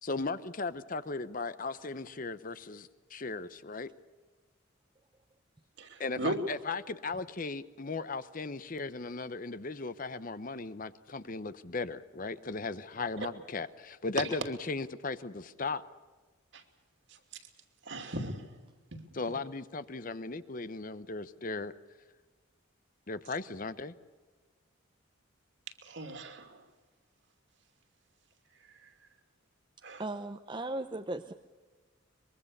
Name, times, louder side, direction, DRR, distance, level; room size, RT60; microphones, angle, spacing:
voice 1, 0.0-3.9 6.0-15.8 19.1-21.7 23.1-23.9, left 3 dB, 40° left, 14 dB, 0.8 m, -37 dB
voice 2, 5.8-6.4 16.5-16.6 17.9-18.5 18.9-19.0 25.8-26.6 29.8-30.0, right 1 dB, 60° right, 6 dB, 2.8 m, -37 dB
voice 3, 30.0-31.3, right 2 dB, 25° right, 6 dB, 0.8 m, -37 dB
24.0 x 22.5 x 6.7 m, 1.4 s
head